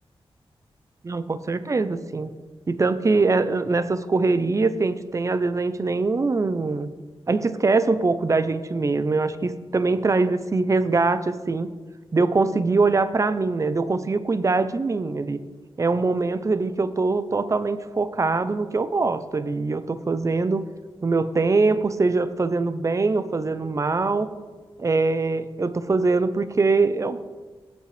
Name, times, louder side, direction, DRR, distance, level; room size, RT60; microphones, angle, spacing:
voice 1, 1.0-2.3 2.7-6.9 7.3-11.7 12.1-15.4 15.8-20.7 21.0-24.3 24.8-27.2, right 3 dB, 30° right, 13 dB, 0.6 m, -23 dB
16.0 x 8.2 x 3.3 m, 1.4 s
wide cardioid pair, 105°, 10 cm